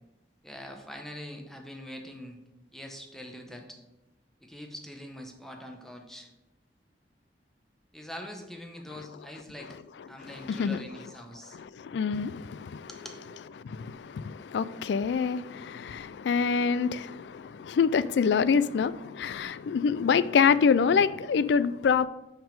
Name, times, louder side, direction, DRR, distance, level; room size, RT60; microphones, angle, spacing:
voice 1, 0.4-2.4 2.7-3.8 4.4-6.3 7.9-9.7 10.1-11.6 12.9-13.2, equal, ahead, 0.9 m, -43 dB
voice 2, 11.8-12.9 13.6-22.1, left 6 dB, 75° left, 0.3 m, -26 dB
6.1 x 5.2 x 5.2 m
head